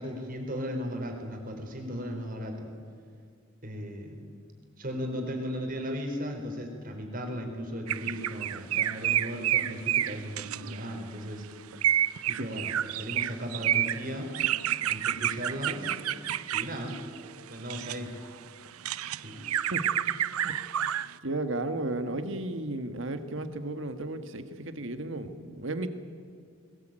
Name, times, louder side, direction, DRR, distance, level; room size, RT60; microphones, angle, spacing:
voice 1, 0.0-2.7 3.6-4.2 4.8-11.5 12.3-14.4 14.9-15.9 16.5-17.0 17.5-18.1 19.2-19.4, equal, 40° right, 3 dB, 4.3 m, -36 dB
sound 1, 7.9-11.1 11.7-18.0 18.5-21.1, right 11 dB, 90° right, 0.6 m, -29 dB
voice 2, 21.2-25.9, right 2 dB, 60° right, 9 dB, 1.7 m, -34 dB
21.0 x 20.5 x 9.1 m, 2.1 s
head